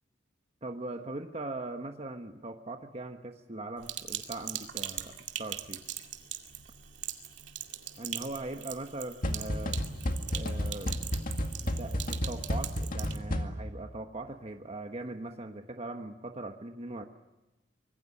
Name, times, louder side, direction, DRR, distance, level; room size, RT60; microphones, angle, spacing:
voice 1, 0.6-5.1 5.4-5.8 8.0-9.8 10.3-10.9 11.8-17.0, right 2 dB, 35° right, 5 dB, 1.3 m, -40 dB
Sink (filling or washing), 3.8-13.2, right 11 dB, 80° right, 2.3 m, -41 dB
sound 1, 9.2-13.8, equal, 50° left, 2.1 m, -32 dB
25.0 x 21.0 x 8.6 m, 1.0 s
head